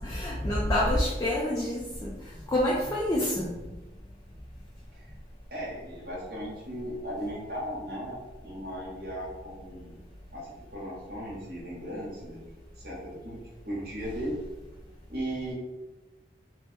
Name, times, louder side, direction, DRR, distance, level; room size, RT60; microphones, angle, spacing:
voice 1, 0.0-3.5, left 1 dB, 20° left, -5 dB, 0.3 m, -27 dB
voice 2, 5.5-10.0 10.3-12.4 12.8-13.4 13.7-14.3 15.1-15.5, equal, 55° right, -5 dB, 1.0 m, -37 dB
3.0 x 2.1 x 3.1 m, 1.1 s
head